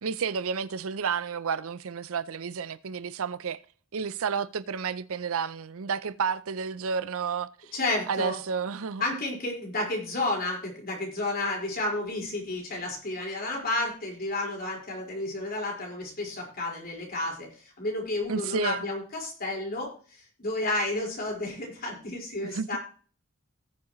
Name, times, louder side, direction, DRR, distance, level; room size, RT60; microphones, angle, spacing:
voice 1, 0.0-3.6 3.9-7.7 8.1-9.0 18.3-18.9 22.4-22.8, right 6 dB, 70° right, 0.6 m, -31 dB
voice 2, 7.7-8.4 9.0-19.9 20.4-22.8, left 2 dB, 45° left, 4.8 m, -31 dB
19.0 x 7.2 x 3.1 m
head